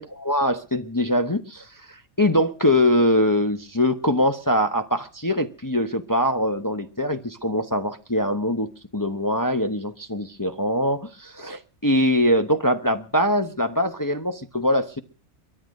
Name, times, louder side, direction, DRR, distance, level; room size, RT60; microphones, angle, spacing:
voice 1, 0.0-15.0, left 1 dB, 20° left, 0.7 m, -23 dB
23.0 x 8.8 x 6.4 m
omnidirectional pair, 1.4 m